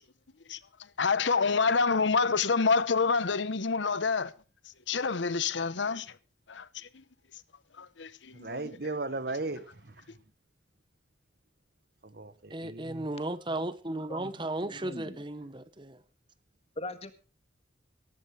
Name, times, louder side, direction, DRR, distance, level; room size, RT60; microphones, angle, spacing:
voice 1, 1.0-4.3 4.9-6.0 6.5-6.6 8.0-8.1 8.5-8.6, left 4 dB, 75° left, 0.9 m, -26 dB
voice 2, 8.3-10.0 12.0-13.1, right 2 dB, 55° right, 1.3 m, -37 dB
voice 3, 12.5-16.0, right 1 dB, 25° right, 1.0 m, -35 dB
voice 4, 14.6-15.3 16.8-17.2, left 1 dB, 35° left, 1.7 m, -41 dB
17.5 x 15.0 x 3.2 m
head